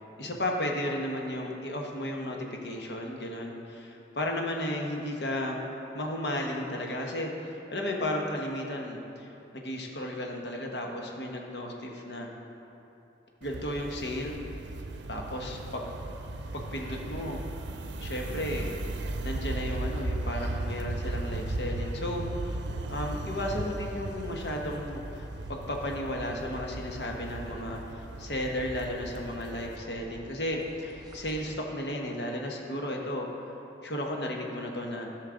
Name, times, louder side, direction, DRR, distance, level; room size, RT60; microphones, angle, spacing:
voice 1, 0.2-5.6 5.9-12.3 13.4-14.4 15.1-15.9 16.5-17.4 18.0-18.7 19.2-22.6 22.9-33.3 33.8-35.1, left 1 dB, 65° left, 0 dB, 1.1 m, -34 dB
sound 1, 13.4-29.8, right 2 dB, 90° right, 0.5 m, -36 dB
sound 2, 22.4-31.6, right 1 dB, 20° right, 0.6 m, -49 dB
12.5 x 6.4 x 3.8 m, 2.9 s
head